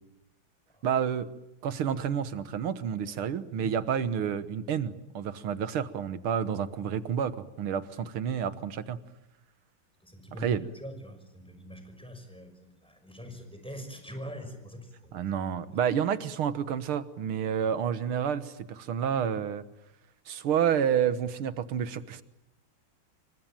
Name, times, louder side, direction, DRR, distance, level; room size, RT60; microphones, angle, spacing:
voice 1, 0.8-1.3 1.6-9.0 10.4-10.7 15.1-19.6 20.3-22.2, right 8 dB, 90° right, 13 dB, 2.1 m, -29 dB
voice 2, 10.0-15.3 15.7-15.8, equal, ahead, 6 dB, 5.7 m, -44 dB
27.5 x 24.0 x 9.0 m, 0.89 s
omnidirectional pair, 2.3 m